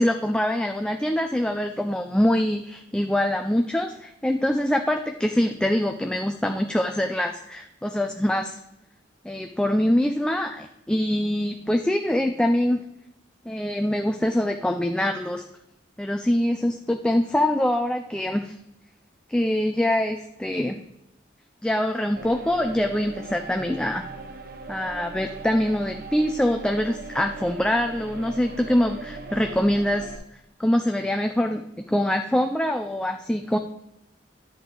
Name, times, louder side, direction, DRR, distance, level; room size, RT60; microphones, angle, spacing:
voice 1, 0.0-8.6 9.2-12.8 13.5-15.4 16.0-18.5 19.3-20.8 21.6-24.1 24.7-30.1 30.6-33.6, left 1 dB, 5° left, 4 dB, 0.4 m, -24 dB
sound 1, 22.2-30.2, right 3 dB, 55° right, 0.9 m, -39 dB
10.5 x 7.7 x 3.9 m, 0.86 s
head